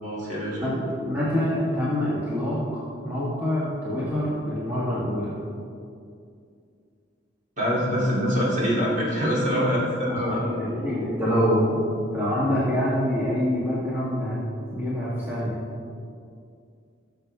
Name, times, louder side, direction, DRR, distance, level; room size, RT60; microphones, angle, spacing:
voice 1, 0.0-0.8 7.6-10.4, equal, 40° right, -6 dB, 2.7 m, -24 dB
voice 2, 0.6-5.4 10.0-14.4 14.7-15.6, equal, 10° right, -9 dB, 1.6 m, -26 dB
15.0 x 7.1 x 3.4 m, 2.4 s
head